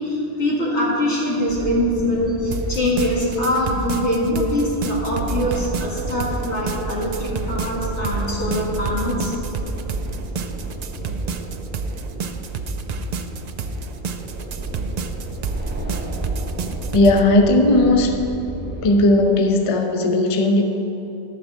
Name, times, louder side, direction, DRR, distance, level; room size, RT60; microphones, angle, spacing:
voice 1, 0.0-9.4, left 1 dB, 85° left, -5 dB, 2.3 m, -23 dB
sound 1, 1.5-19.0, right 2 dB, 10° right, 0.8 m, -32 dB
sound 2, 2.5-17.2, right 4 dB, 55° right, 0.4 m, -30 dB
voice 2, 16.9-18.2 18.8-20.6, left 2 dB, 35° left, 4 dB, 0.6 m, -16 dB
12.0 x 4.4 x 7.0 m, 3.0 s
omnidirectional pair, 1.1 m